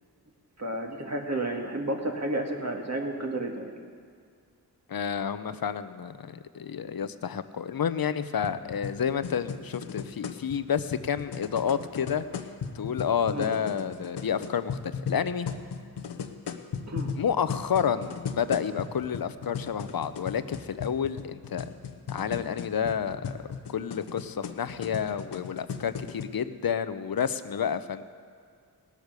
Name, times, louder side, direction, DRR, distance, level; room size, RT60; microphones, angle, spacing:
voice 1, 0.6-3.7 13.3-13.5 16.9-17.1, right 1 dB, 40° right, 1 dB, 2.2 m, -31 dB
voice 2, 4.9-12.2 12.7-15.5 17.2-21.7 22.1-28.0, left 7 dB, 60° left, 12 dB, 0.8 m, -30 dB
sound 1, 8.4-26.3, left 6 dB, 80° left, 0.9 m, -37 dB
18.5 x 8.3 x 6.7 m, 2.2 s
cardioid pair, 50°, 40 cm